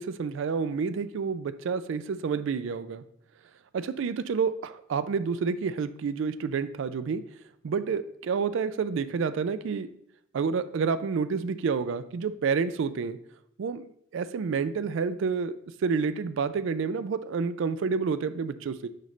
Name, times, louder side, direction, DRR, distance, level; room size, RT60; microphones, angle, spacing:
voice 1, 0.0-3.0 3.7-7.2 7.6-9.9 10.3-13.2 13.6-13.9 14.1-15.5 15.8-18.9, right 5 dB, 65° right, 12 dB, 0.4 m, -29 dB
6.5 x 5.0 x 3.2 m, 0.75 s
head